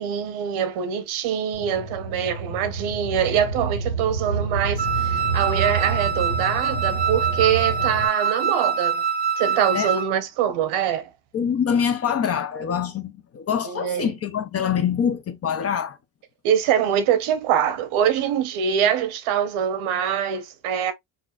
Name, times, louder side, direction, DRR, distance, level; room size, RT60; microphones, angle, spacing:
voice 1, 0.0-9.0 9.4-11.1 13.7-14.1 16.4-20.9, right 9 dB, 85° right, 0.9 m, -24 dB
sound 1, 1.5-8.1, right 4 dB, 90° left, 1.5 m, -28 dB
Wind instrument woodwind instrument, 4.8-10.1, right 7 dB, 20° right, 0.6 m, -25 dB
voice 2, 11.3-16.0, left 8 dB, 35° left, 0.4 m, -24 dB
4.1 x 2.4 x 2.3 m
cardioid pair, 140°, 48 cm